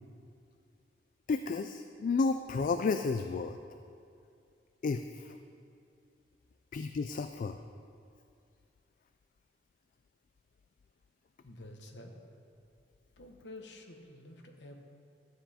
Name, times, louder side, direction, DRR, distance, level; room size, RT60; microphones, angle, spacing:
voice 1, 1.3-3.6 4.8-5.4 6.7-7.6, left 4 dB, 50° left, 8 dB, 0.3 m, -32 dB
voice 2, 11.4-12.1 13.2-14.8, left 1 dB, 70° left, 3 dB, 1.0 m, -49 dB
12.5 x 7.8 x 4.2 m, 2.5 s
head